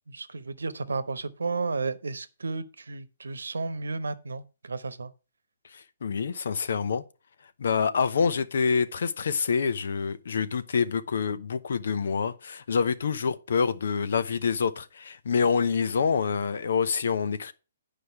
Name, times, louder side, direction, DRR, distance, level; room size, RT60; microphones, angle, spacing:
voice 1, 0.1-5.1, right 3 dB, 85° right, 0.9 m, -33 dB
voice 2, 5.7-7.0 7.6-17.5, left 5 dB, 70° left, 0.8 m, -26 dB
9.5 x 5.1 x 5.8 m
hypercardioid pair, 135°, 0 cm